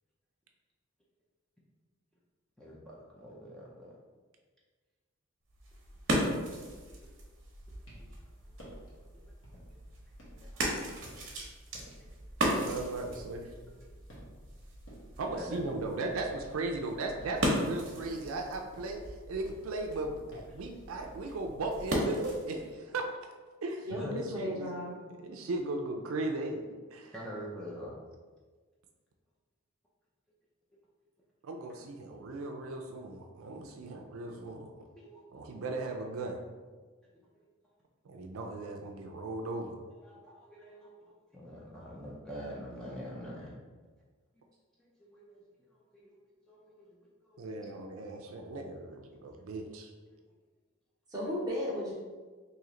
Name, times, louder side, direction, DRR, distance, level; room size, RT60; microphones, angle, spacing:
voice 1, 2.6-4.0 8.0-8.1 9.1-9.2 10.3-10.7 12.0-12.1 15.4-15.7 18.0-18.2 23.9-24.2 26.9-28.0 32.1-32.4 35.0-35.5 37.0-37.5 40.0-43.6 45.0-46.2 46.4-47.0 47.2-47.5 49.4-49.5 51.2-51.3, equal, 5° left, -6 dB, 0.5 m, -46 dB
sound 1, 5.5-22.6, equal, 55° right, 0.8 m, -37 dB
sound 2, 7.8-8.2 8.6-9.0 9.4-9.8 10.2-13.8 14.1-14.6 14.9-16.8 17.0-19.1 19.4-22.7, equal, 65° left, 1.0 m, -56 dB
voice 2, 12.6-13.5 15.2-23.1 23.6-23.9 24.3-24.7 25.2-27.1 31.4-34.9 35.3-36.4 38.0-39.8 47.4-49.9, right 2 dB, 75° right, 3 dB, 0.4 m, -37 dB
voice 3, 23.8-25.0 51.1-51.9, equal, 15° right, -6 dB, 0.9 m, -35 dB
3.1 x 2.8 x 3.7 m, 1.4 s
head